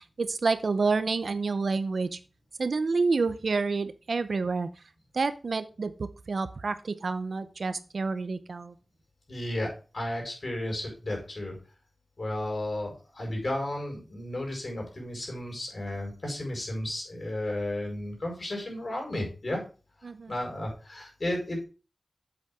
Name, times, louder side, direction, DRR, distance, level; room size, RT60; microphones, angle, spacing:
voice 1, 0.0-2.2 2.6-4.7 5.1-8.7 20.0-20.3, right 4 dB, 70° right, 12 dB, 0.7 m, -29 dB
voice 2, 9.3-11.6 12.2-19.6 20.3-21.6, left 1 dB, 50° left, 0 dB, 5.0 m, -33 dB
8.3 x 7.7 x 3.6 m, 0.34 s
wide cardioid pair, 90°, 0 cm